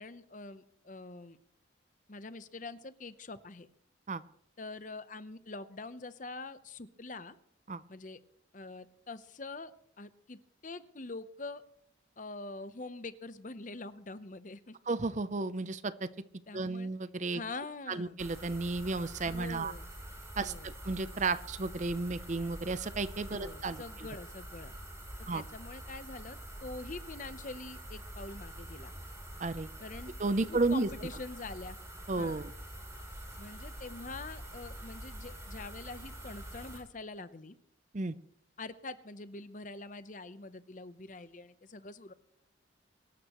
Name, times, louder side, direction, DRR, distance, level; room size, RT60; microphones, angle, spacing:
voice 1, 0.0-1.4 2.1-3.7 4.6-7.4 7.9-8.2 8.5-9.7 10.0-11.6 12.2-14.8 16.5-16.9 17.3-18.2 19.2-19.9 20.3-20.7 23.3-24.7 25.3-28.9 29.8-30.1 30.5-31.8 32.1-32.4 33.4-37.5 38.6-42.1, left 3 dB, 40° left, 13 dB, 0.8 m, -44 dB
voice 2, 14.9-16.1 16.5-17.4 17.9-19.7 20.4-24.1 25.3-25.4 29.4-29.7 30.2-30.9 32.1-32.5 37.9-38.1, right 3 dB, 35° right, 15 dB, 0.6 m, -33 dB
sound 1, 18.2-36.8, right 1 dB, 15° right, 3.5 m, -46 dB
24.0 x 13.0 x 3.0 m, 0.70 s
head